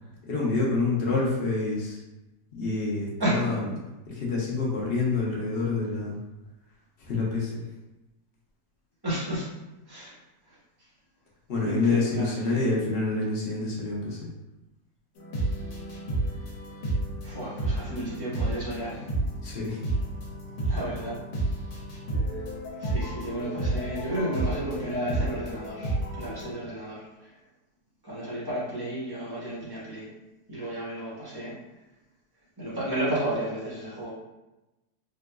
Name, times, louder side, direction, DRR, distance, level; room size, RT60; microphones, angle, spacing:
voice 1, 0.3-2.0 2.5-3.7 4.1-6.2 7.0-7.6 11.5-14.2 19.4-19.8, left 3 dB, 50° left, -4 dB, 0.8 m, -27 dB
voice 2, 3.2-3.5 9.0-9.5 9.9-10.1 11.6-12.4 17.2-19.0 20.7-21.1 22.8-27.0 28.0-30.1 30.5-31.5 32.6-34.1, right 1 dB, 20° right, -8 dB, 0.7 m, -32 dB
sound 1, 15.2-26.5, right 1 dB, 70° left, 1.2 m, -31 dB
3.7 x 2.5 x 2.3 m, 1.0 s
omnidirectional pair, 1.8 m